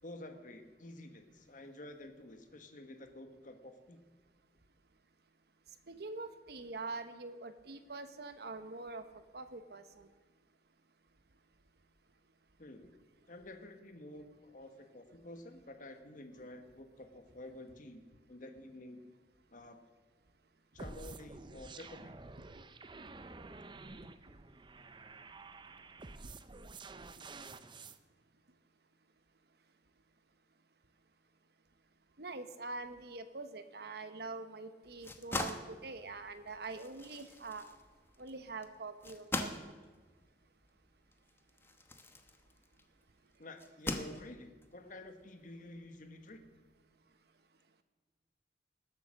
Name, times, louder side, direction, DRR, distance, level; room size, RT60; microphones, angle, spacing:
voice 1, 0.0-4.0 12.6-12.9 13.3-18.0 18.3-19.1 19.5-19.8 20.7-22.2 43.4-46.5, left 1 dB, 50° left, 6 dB, 1.4 m, -50 dB
voice 2, 5.9-9.0 9.3-10.1 32.2-37.7 38.2-39.7, right 3 dB, 65° right, 10 dB, 1.1 m, -44 dB
sound 1, 20.8-28.0, right 3 dB, 25° right, 0.6 m, -50 dB
sound 2, 34.8-42.9 43.6-44.6, left 1 dB, 15° left, 0.9 m, -42 dB
19.0 x 8.3 x 6.5 m, 1.4 s
head